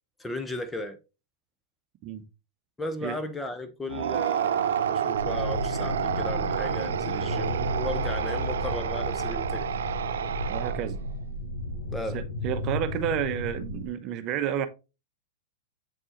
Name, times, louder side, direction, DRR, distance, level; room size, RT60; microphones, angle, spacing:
voice 1, 0.2-1.0 2.8-9.7 11.9-12.2, left 1 dB, 10° left, 0.8 m, -35 dB
sound 1, 3.9-11.1, right 9 dB, 75° right, 0.5 m, -29 dB
sound 2, 5.1-13.9, left 1 dB, 60° left, 2.8 m, -33 dB
voice 2, 10.5-11.0 12.1-14.7, right 10 dB, 40° right, 0.8 m, -30 dB
7.8 x 4.4 x 2.9 m
hypercardioid pair, 110°, 0 cm